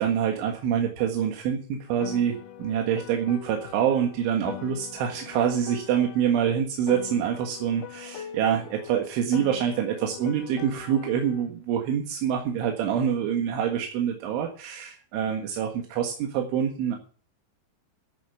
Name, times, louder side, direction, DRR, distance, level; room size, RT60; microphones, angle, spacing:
voice 1, 0.0-17.0, right 9 dB, 80° right, 3 dB, 4.1 m, -26 dB
Piano, 2.0-6.5 6.9-11.5, left 10 dB, 80° left, 1.8 m, -42 dB
14.0 x 8.6 x 6.8 m, 0.41 s
omnidirectional pair, 5.5 m